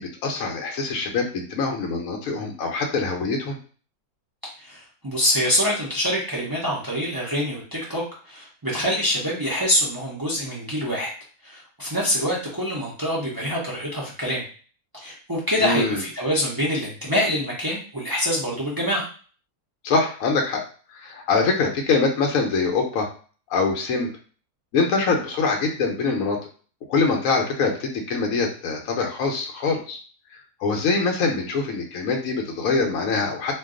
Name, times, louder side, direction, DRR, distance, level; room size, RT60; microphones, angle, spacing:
voice 1, 0.0-3.6 15.6-16.0 19.8-20.6 20.9-23.1 23.5-24.1 24.7-26.4 26.9-30.0 30.6-33.5, left 4 dB, 70° left, 2 dB, 1.0 m, -24 dB
voice 2, 4.6-11.1 11.4-14.4 14.9-19.0, equal, 35° right, -5 dB, 0.3 m, -25 dB
2.5 x 2.2 x 3.6 m, 0.41 s
omnidirectional pair, 1.6 m